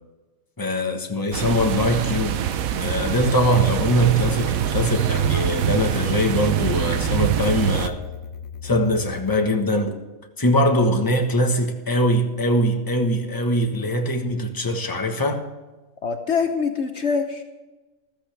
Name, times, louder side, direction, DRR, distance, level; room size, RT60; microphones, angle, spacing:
voice 1, 0.6-2.4 2.8-8.0 8.6-10.0 10.4-15.4, equal, 15° left, 1.3 m, -22 dB
sound 1, 1.3-7.9, right 10 dB, 90° right, 1.2 m, -24 dB
sound 2, 3.8-9.4, left 7 dB, 80° left, 1.2 m, -39 dB
voice 2, 16.0-17.4, left 5 dB, 55° left, 1.2 m, -24 dB
14.5 x 13.5 x 3.5 m
omnidirectional pair, 1.4 m